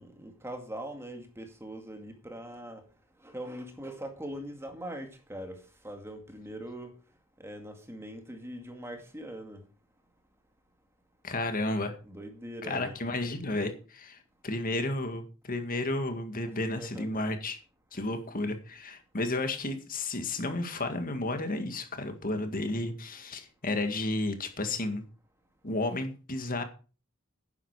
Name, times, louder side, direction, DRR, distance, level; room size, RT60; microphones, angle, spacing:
voice 1, 0.0-2.8 3.2-6.9 7.4-9.6 12.1-13.0 16.8-17.2, right 1 dB, 10° right, 2.1 m, -42 dB
voice 2, 11.2-12.0 12.6-17.6 17.9-25.0 25.6-26.6, left 2 dB, 40° left, 1.9 m, -32 dB
11.5 x 10.0 x 4.9 m
head